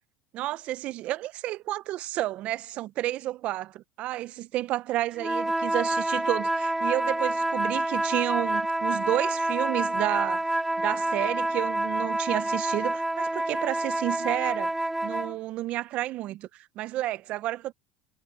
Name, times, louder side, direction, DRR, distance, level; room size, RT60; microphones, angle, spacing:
voice 1, 0.3-14.7 15.0-17.7, right 15 dB, 55° right, 0.8 m, -31 dB
sound 1, 5.2-15.4, right 1 dB, 5° right, 3.5 m, -28 dB
supercardioid pair, 105°, 3 cm